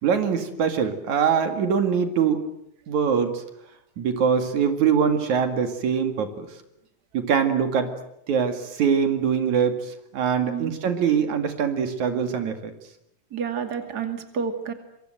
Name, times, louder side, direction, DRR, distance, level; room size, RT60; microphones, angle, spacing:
voice 1, 0.0-2.4 2.9-3.4 4.0-6.5 7.1-7.9 8.3-12.7, right 7 dB, 75° right, 7 dB, 3.6 m, -23 dB
voice 2, 10.4-10.8 13.3-14.7, right 6 dB, 35° right, 7 dB, 2.8 m, -29 dB
27.0 x 23.5 x 8.0 m, 0.77 s
omnidirectional pair, 3.4 m